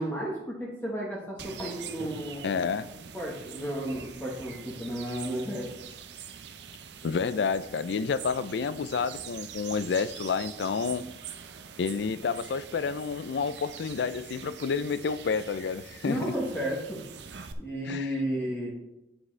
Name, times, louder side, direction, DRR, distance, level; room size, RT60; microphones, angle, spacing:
voice 1, 0.0-2.5 3.1-5.7 16.0-17.0 17.6-18.7, equal, 10° left, 1.2 m, -33 dB
sound 1, 1.4-17.5, right 7 dB, 80° right, 0.6 m, -44 dB
voice 2, 2.4-2.9 7.0-11.0 11.8-16.3 17.9-18.1, left 5 dB, 80° left, 0.4 m, -29 dB
8.6 x 7.1 x 3.3 m
head